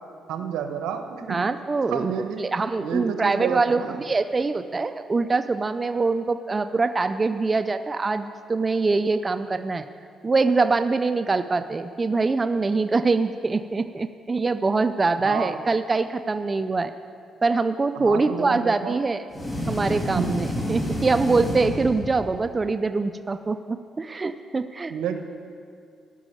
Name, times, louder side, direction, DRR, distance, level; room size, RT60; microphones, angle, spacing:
voice 1, 0.3-1.4 1.9-2.4 2.8-4.0 15.2-15.6 17.9-19.0 20.1-20.3 24.9-25.2, right 8 dB, 90° right, 6 dB, 1.1 m, -30 dB
voice 2, 1.3-9.9 10.2-16.9 17.4-19.2 19.7-24.9, right 3 dB, 30° right, 10 dB, 0.4 m, -24 dB
sound 1, 19.3-22.5, equal, 25° left, 2.7 m, -29 dB
14.0 x 6.2 x 9.2 m, 2.4 s
cardioid pair, 90°, 0 cm